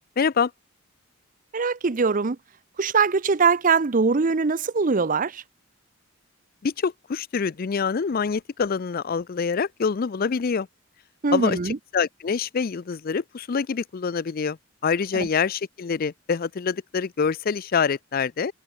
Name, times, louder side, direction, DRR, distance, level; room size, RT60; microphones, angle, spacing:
voice 1, 0.2-0.5 6.6-10.7 11.3-14.6 14.8-18.5, left 5 dB, 45° left, 0.4 m, -25 dB
voice 2, 1.5-2.4 2.8-5.4 11.2-11.8 15.1-15.3, right 4 dB, 40° right, 0.6 m, -22 dB
head